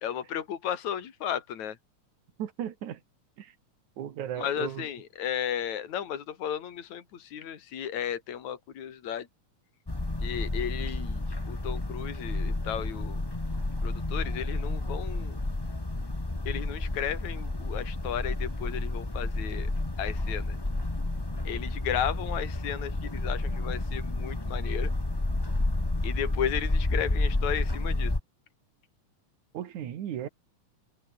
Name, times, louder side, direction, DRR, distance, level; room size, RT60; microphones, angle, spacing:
voice 1, 0.0-1.8 4.4-9.3 10.2-13.2 13.8-15.4 16.5-19.7 20.0-20.6 21.4-24.9 26.0-28.1, left 9 dB, 65° left, 3.7 m, -34 dB
voice 2, 2.4-3.0 3.4-3.5 4.0-4.9 29.5-30.3, right 10 dB, 70° right, 3.2 m, -36 dB
sound 1, 9.9-28.2, left 2 dB, 20° left, 0.7 m, -30 dB
omnidirectional pair, 3.6 m